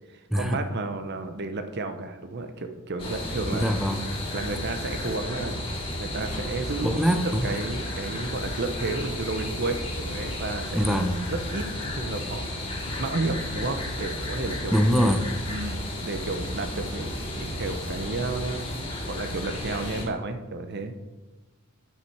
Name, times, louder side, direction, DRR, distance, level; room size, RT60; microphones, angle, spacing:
voice 1, 0.1-3.7 4.3-5.7 6.0-11.0 11.3-12.4 13.0-14.7 15.5-18.6 19.0-21.1, right 3 dB, 50° right, 8 dB, 0.8 m, -32 dB
sound 1, 3.0-20.0, left 1 dB, 25° left, 2.3 m, -33 dB
voice 2, 3.5-4.0 6.8-7.5 10.7-11.2 14.7-15.3, equal, ahead, 6 dB, 0.5 m, -23 dB
9.1 x 7.0 x 4.8 m, 1.2 s
head